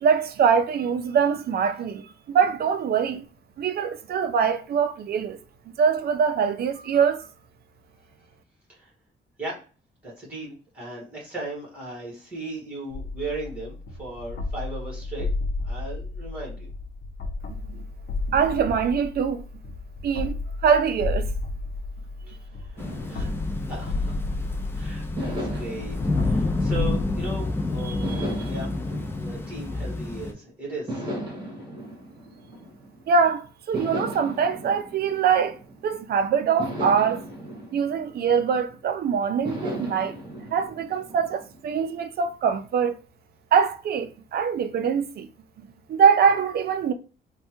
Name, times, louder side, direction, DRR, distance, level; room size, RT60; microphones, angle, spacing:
voice 1, 0.0-3.2 3.6-5.4 5.8-7.3 17.5-17.8 18.3-19.4 20.0-20.3 20.6-21.3 27.8-28.3 33.1-37.2 37.7-40.2 40.5-43.0 43.5-45.3 45.6-46.9, right 6 dB, 55° right, 0.4 m, -23 dB
voice 2, 10.0-15.3 15.6-16.7 22.3-24.2 24.7-26.0 26.2-28.7 29.1-31.1, right 2 dB, 5° right, 1.5 m, -37 dB
sound 1, 12.9-27.3, left 3 dB, 65° left, 0.6 m, -32 dB
sound 2, 22.8-30.3, left 2 dB, 10° left, 0.3 m, -29 dB
sound 3, 22.8-24.6 25.2-27.4 28.0-30.3 30.9-33.1 33.7-36.0 36.6-38.9 39.4-41.7, equal, 20° right, 1.3 m, -37 dB
3.3 x 2.2 x 2.9 m
wide cardioid pair, 145°, 19 cm